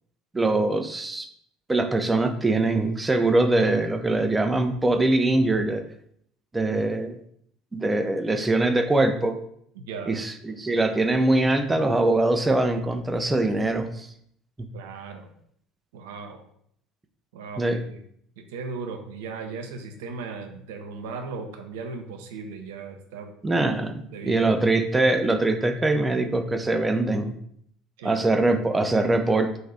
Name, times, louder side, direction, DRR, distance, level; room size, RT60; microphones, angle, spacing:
voice 1, 0.3-1.3 1.7-5.8 6.5-7.2 7.7-9.4 10.1-14.1 17.6-17.8 23.4-27.3 28.0-29.6, right 2 dB, 15° right, 6 dB, 0.5 m, -23 dB
voice 2, 9.8-10.1 14.7-15.3 15.9-16.4 17.3-18.0 18.4-23.3 24.1-24.5 28.0-28.3, right 4 dB, 65° right, 5 dB, 0.6 m, -37 dB
3.9 x 2.6 x 4.5 m, 0.67 s
figure-of-eight pair, 60°, 0 cm